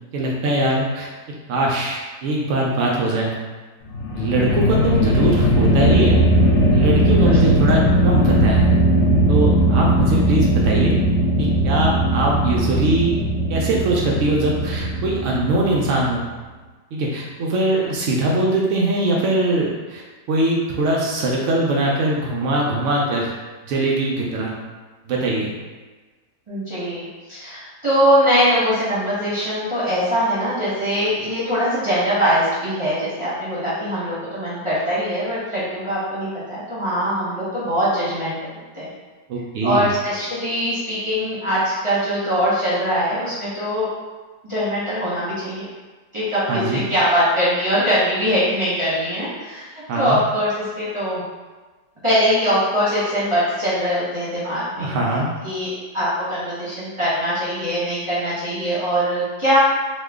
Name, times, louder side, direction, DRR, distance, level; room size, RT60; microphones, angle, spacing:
voice 1, 0.1-1.1 1.5-3.4 4.1-6.2 6.7-8.7 9.3-11.0 11.4-13.1 13.5-16.2 16.9-23.3 23.6-24.5 25.1-25.5 39.3-39.9 46.5-46.8 49.9-50.2 54.8-55.3, right 2 dB, 85° right, -3 dB, 0.6 m, -21 dB
sound 1, 3.9-16.2, right 1 dB, 90° left, 0.6 m, -18 dB
voice 2, 26.5-38.9 39.6-43.9 44.4-45.7 46.1-46.5 46.7-49.7 49.9-51.2 52.0-54.9 55.4-59.6, equal, 25° right, -11 dB, 0.6 m, -22 dB
3.0 x 2.1 x 3.5 m, 1.3 s
omnidirectional pair, 1.9 m